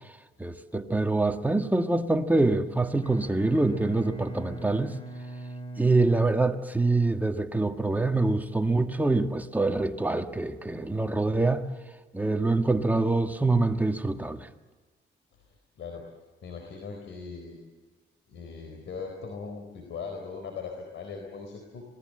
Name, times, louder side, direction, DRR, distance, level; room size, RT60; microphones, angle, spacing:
voice 1, 0.4-4.9 5.8-11.7 12.1-14.5, right 2 dB, 10° right, 1.7 m, -25 dB
Bowed string instrument, 3.0-7.3, right 2 dB, 25° left, 4.1 m, -41 dB
voice 2, 16.4-17.6 18.3-21.8, left 5 dB, 70° left, 4.2 m, -39 dB
26.0 x 19.5 x 7.8 m
cardioid pair, 90°, 20 cm